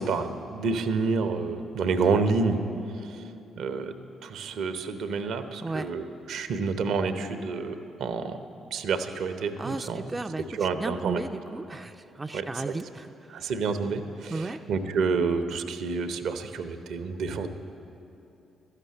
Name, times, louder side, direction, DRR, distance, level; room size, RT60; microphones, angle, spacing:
voice 1, 0.0-2.6 3.0-3.2 3.6-3.9 4.2-8.4 8.7-10.0 10.6-11.2 12.3-12.7 13.3-17.5, right 4 dB, 65° right, 9 dB, 0.6 m, -29 dB
voice 2, 9.6-13.5 14.3-14.6, right 2 dB, 25° right, 6 dB, 0.4 m, -35 dB
12.5 x 6.6 x 8.4 m, 2.8 s
hypercardioid pair, 45°, 0 cm